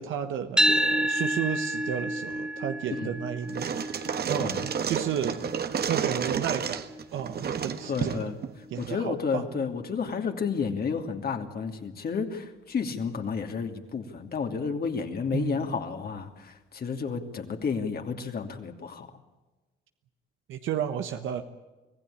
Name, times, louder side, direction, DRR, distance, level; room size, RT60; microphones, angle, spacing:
voice 1, 0.0-3.7 4.0-5.4 5.9-6.8 7.1-8.3 8.7-9.6 15.3-15.6 20.5-21.4, right 9 dB, 80° right, 7 dB, 1.3 m, -32 dB
sound 1, 0.6-8.7, equal, 5° right, 2.6 m, -31 dB
sound 2, 3.4-8.9, right 7 dB, 55° right, 1.5 m, -31 dB
voice 2, 7.9-8.4 8.8-19.1, left 5 dB, 50° left, 4 dB, 2.8 m, -31 dB
25.0 x 16.0 x 8.6 m, 1.2 s
cardioid pair, 90°, 20 cm